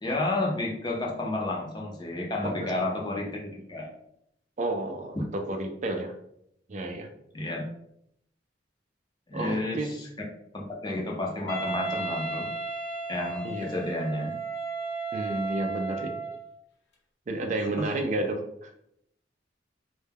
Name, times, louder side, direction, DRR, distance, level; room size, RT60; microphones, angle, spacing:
voice 1, 0.0-3.9 7.3-7.6 9.3-10.1 10.5-12.5 13.1-14.3 17.8-17.9, left 2 dB, 25° left, -1 dB, 0.5 m, -31 dB
voice 2, 4.6-5.2 5.5-6.1 6.7-7.1 9.3-9.9 13.4-13.7 15.1-16.1 17.3-18.7, right 2 dB, 40° right, 4 dB, 0.4 m, -31 dB
Wind instrument woodwind instrument, 11.5-16.5, right 3 dB, 75° left, 0.7 m, -34 dB
2.2 x 2.1 x 3.3 m, 0.75 s
head